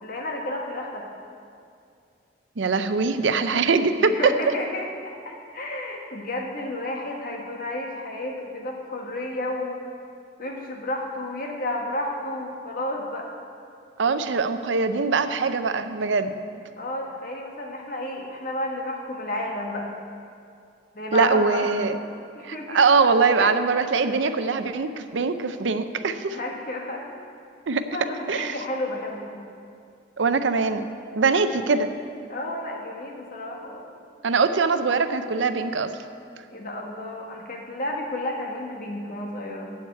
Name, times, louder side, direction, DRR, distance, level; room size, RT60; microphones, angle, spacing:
voice 1, 0.0-1.0 4.0-9.8 10.4-13.3 16.8-19.9 20.9-21.7 22.3-22.8 23.4-23.5 26.3-27.1 27.9-29.4 32.3-33.9 36.5-39.7, left 1 dB, 50° left, 0 dB, 1.5 m, -31 dB
voice 2, 2.6-4.3 14.0-16.3 21.1-22.0 22.4-26.4 27.7-28.0 28.3-28.6 30.2-30.9 31.2-31.9 34.2-35.9, right 4 dB, 90° right, 10 dB, 0.6 m, -22 dB
7.9 x 7.9 x 8.2 m, 2.4 s
head